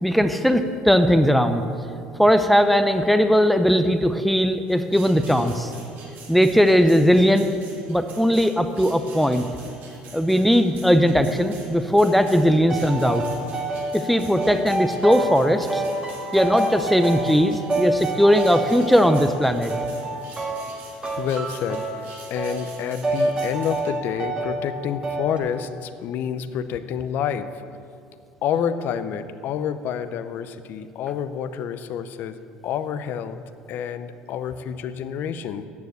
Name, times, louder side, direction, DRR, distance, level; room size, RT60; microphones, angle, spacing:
voice 1, 0.0-1.6 2.2-5.7 6.3-7.5 7.9-9.5 10.1-13.2 13.9-15.8 16.3-19.7, equal, ahead, 8 dB, 0.6 m, -19 dB
sound 1, 4.7-23.8, right 3 dB, 65° right, 2.8 m, -45 dB
sound 2, 12.7-13.9 14.4-15.4 15.7-17.4 17.7-19.3 19.7-20.8 21.0-22.0 22.4-22.6 23.0-24.6 25.0-25.4, right 2 dB, 25° right, 2.1 m, -27 dB
voice 2, 21.2-27.5 28.4-33.4 33.7-35.6, left 8 dB, 65° left, 12 dB, 0.6 m, -28 dB
9.5 x 7.0 x 8.0 m, 2.4 s
supercardioid pair, 90°, 4 cm